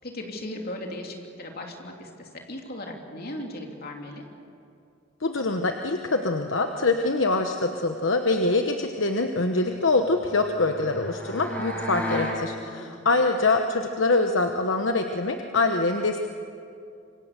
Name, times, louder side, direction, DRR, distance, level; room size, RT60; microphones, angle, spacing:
voice 1, 0.0-4.3 11.7-12.2 12.6-12.9, left 1 dB, 50° left, 2 dB, 3.1 m, -38 dB
voice 2, 5.2-16.3, left 3 dB, 70° left, 5 dB, 1.1 m, -24 dB
sound 1, 9.8-12.4, left 1 dB, 10° left, 5.5 m, -34 dB
26.5 x 24.5 x 6.8 m, 2.5 s
head